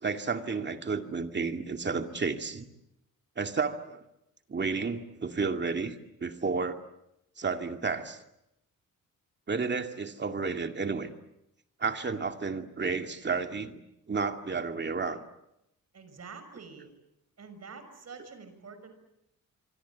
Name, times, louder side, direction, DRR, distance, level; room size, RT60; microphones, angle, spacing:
voice 1, 0.0-2.7 3.4-4.0 4.5-6.8 7.4-8.2 9.5-11.1 11.8-13.8 14.1-15.2, right 4 dB, 35° right, 6 dB, 2.4 m, -31 dB
voice 2, 15.9-16.9 17.4-18.9, right 5 dB, 50° right, 9 dB, 6.1 m, -47 dB
27.0 x 24.0 x 8.6 m, 0.84 s
cardioid pair, 115°, 32 cm